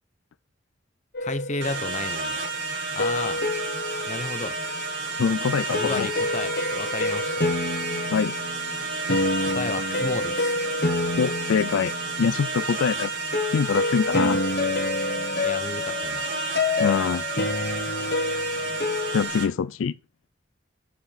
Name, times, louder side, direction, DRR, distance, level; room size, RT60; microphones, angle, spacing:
sound 1, 1.1-2.2 3.0-4.8 5.7-12.4 13.3-19.3, left 2 dB, 55° left, 1.3 m, -28 dB
voice 1, 1.2-2.4 2.9-3.4 4.1-4.6 5.7-7.5 9.5-10.6 15.4-16.3, left 3 dB, 40° left, 0.8 m, -32 dB
sound 2, 1.6-19.5, right 3 dB, 65° right, 1.8 m, -31 dB
sound 3, 5.0-9.3, right 6 dB, ahead, 2.1 m, -45 dB
voice 2, 5.2-6.1 8.1-8.3 11.2-11.9 12.2-13.1 13.5-14.4 16.8-17.2 18.0-18.1 19.1-19.9, left 6 dB, 85° left, 0.4 m, -24 dB
6.7 x 5.7 x 5.5 m
head